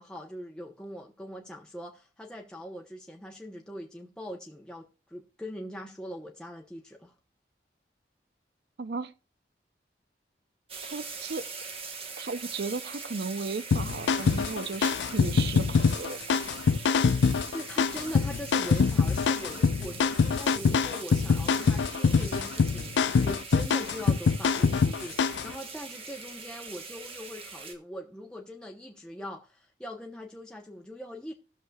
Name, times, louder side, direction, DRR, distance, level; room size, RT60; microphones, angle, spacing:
voice 1, 0.0-7.1 17.2-31.3, equal, 5° left, 0.9 m, -42 dB
voice 2, 8.8-9.1 10.8-11.4 12.2-16.4, right 4 dB, 65° right, 0.6 m, -35 dB
sound 1, 10.7-27.7, right 4 dB, 30° right, 1.2 m, -42 dB
sound 2, 13.7-25.5, left 5 dB, 80° left, 0.4 m, -24 dB
18.5 x 6.5 x 2.4 m
head